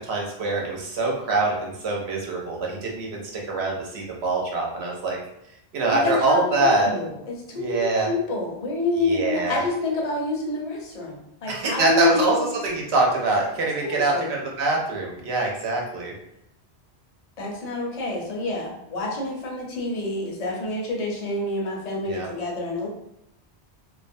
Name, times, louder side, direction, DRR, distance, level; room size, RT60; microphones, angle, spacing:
voice 1, 0.0-5.2 5.7-6.9 7.5-8.1 9.0-9.6 11.5-12.3 12.6-16.1 22.0-22.3, right 2 dB, 80° right, -1 dB, 0.9 m, -24 dB
voice 2, 6.0-12.5 13.8-14.3 17.4-22.9, left 3 dB, 45° left, -2 dB, 0.6 m, -27 dB
2.3 x 2.1 x 2.5 m, 0.80 s
omnidirectional pair, 1.1 m